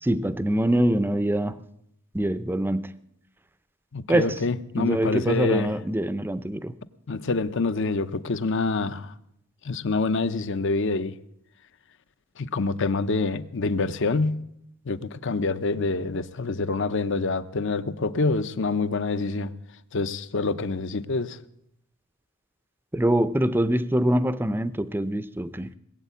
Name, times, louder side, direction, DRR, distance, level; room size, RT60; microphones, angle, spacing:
voice 1, 0.0-1.6 2.1-2.9 4.1-4.4 4.8-6.7 22.9-25.7, right 1 dB, 10° right, 0.5 m, -24 dB
voice 2, 3.9-5.7 7.1-9.1 9.6-11.2 12.4-14.4 14.8-19.5 19.9-21.4, left 3 dB, 60° left, 0.7 m, -26 dB
20.0 x 8.2 x 8.3 m
head